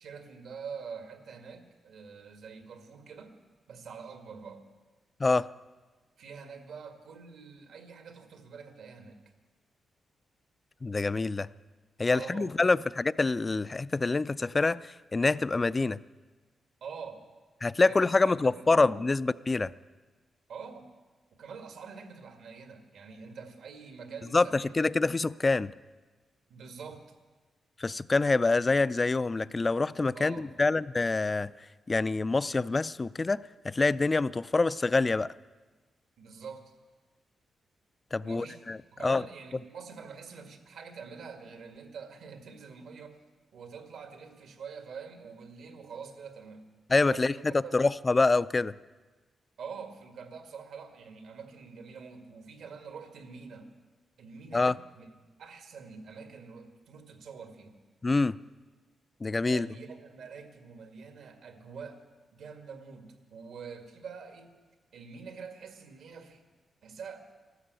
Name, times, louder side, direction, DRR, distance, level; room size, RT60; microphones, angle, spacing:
voice 1, 0.0-3.4 3.7-4.7 6.2-9.2 12.1-12.8 16.8-17.3 17.8-19.0 20.5-20.9 21.4-25.0 26.5-27.1 30.1-30.5 36.2-36.7 38.2-38.6 38.9-43.2 43.5-46.7 47.1-47.9 49.6-53.7 54.2-55.1 55.4-57.8 59.4-62.0 62.3-64.6 64.9-66.4 66.8-67.3, right 5 dB, 85° right, 6 dB, 2.0 m, -45 dB
voice 2, 10.8-11.5 12.0-16.0 17.6-19.7 24.3-25.7 27.8-31.5 31.9-35.3 38.1-39.2 46.9-47.3 47.7-48.7 54.5-54.7 58.0-58.4 59.2-59.7, left 3 dB, 30° left, 18 dB, 0.4 m, -26 dB
13.0 x 13.0 x 8.2 m, 1.3 s
cardioid pair, 90°, 0 cm